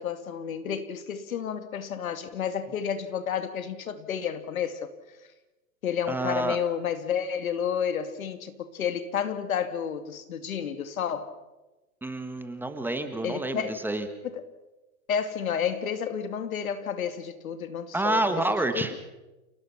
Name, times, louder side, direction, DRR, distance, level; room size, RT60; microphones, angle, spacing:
voice 1, 0.0-4.9 5.8-11.3 13.2-13.8 14.2-14.4 15.1-18.2 18.7-18.8, left 8 dB, 70° left, 2.5 m, -31 dB
voice 2, 6.1-6.6 12.0-14.1 17.9-18.9, right 2 dB, 5° right, 1.5 m, -28 dB
29.0 x 19.0 x 5.9 m
hypercardioid pair, 125°, 43 cm